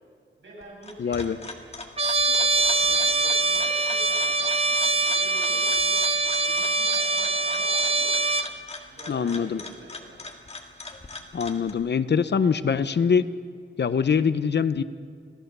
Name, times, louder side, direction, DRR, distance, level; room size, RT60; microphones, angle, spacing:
voice 1, 0.4-1.6 2.2-5.9 6.2-8.2 8.9-10.2, right 1 dB, 70° right, -3 dB, 7.9 m, -46 dB
sound 1, 0.6-11.7, left 3 dB, 30° left, 1.9 m, -41 dB
voice 2, 1.0-1.4 9.1-9.6 11.3-13.3 13.8-14.8, left 6 dB, 55° left, 14 dB, 0.7 m, -23 dB
Trumpet, 2.0-8.5, right 3 dB, 30° right, 0.8 m, -23 dB
26.5 x 17.5 x 6.8 m, 2.1 s
wide cardioid pair, 175°, 21 cm